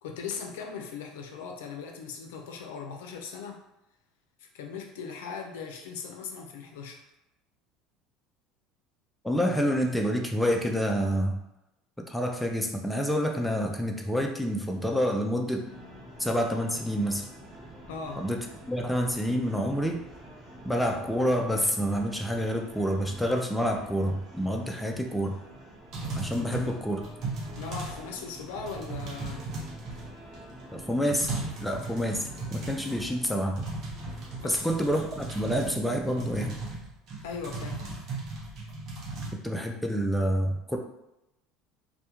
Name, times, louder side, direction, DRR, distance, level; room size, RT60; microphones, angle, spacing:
voice 1, 0.0-3.6 4.4-7.0 17.9-18.3 26.4-26.5 27.5-29.5 34.4-34.6 37.2-37.8, left 5 dB, 90° left, 3 dB, 0.4 m, -39 dB
voice 2, 9.2-11.4 12.1-15.7 16.2-17.3 18.2-18.4 18.6-20.0 20.6-25.4 26.1-27.0 30.7-33.6 34.4-36.6 39.4-40.8, equal, 5° left, 2 dB, 0.4 m, -28 dB
sound 1, 15.6-35.2, right 1 dB, 25° right, 1.2 m, -48 dB
sound 2, 25.9-28.1 28.3-30.3 30.7-30.8 31.1-33.3 33.6-39.3, right 3 dB, 50° right, 0.7 m, -37 dB
2.2 x 2.1 x 2.9 m, 0.90 s
supercardioid pair, 105°, 0 cm